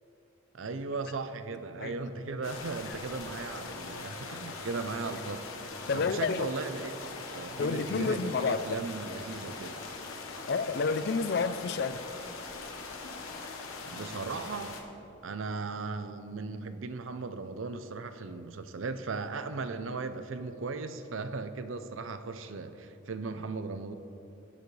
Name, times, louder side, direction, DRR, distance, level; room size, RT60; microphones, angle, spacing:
voice 1, 0.5-5.4 5.7-7.0 7.3-9.8 13.9-14.7 15.2-23.9, right 4 dB, 75° right, 10 dB, 0.6 m, -37 dB
sound 1, 2.4-14.8, left 4 dB, 90° left, 1.2 m, -42 dB
voice 2, 5.9-6.5 7.6-8.8 10.5-12.0, left 4 dB, 55° left, 13 dB, 0.4 m, -29 dB
17.5 x 8.3 x 3.3 m, 2.9 s
head